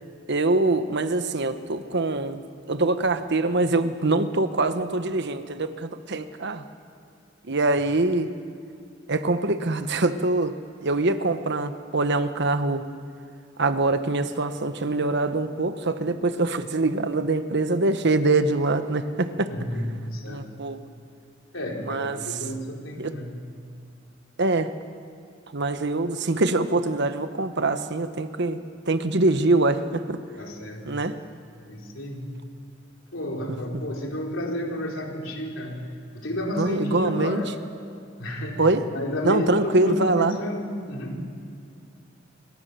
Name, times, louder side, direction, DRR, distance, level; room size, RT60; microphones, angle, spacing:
voice 1, 0.3-2.4 2.7-6.6 7.5-8.3 9.1-12.8 13.6-19.5 20.3-20.8 21.9-22.4 23.0-23.2 24.4-24.7 25.5-28.6 28.9-30.2 30.9-31.2 36.6-37.4 38.6-38.8 39.2-40.4, right 2 dB, 60° right, 10 dB, 1.2 m, -24 dB
voice 2, 19.5-20.5 21.5-23.4 30.4-31.1 31.6-32.4 33.1-35.9 36.1-37.6 38.2-38.6 38.9-41.3, equal, 75° left, 0 dB, 4.1 m, -31 dB
26.0 x 24.5 x 6.9 m, 2.3 s
head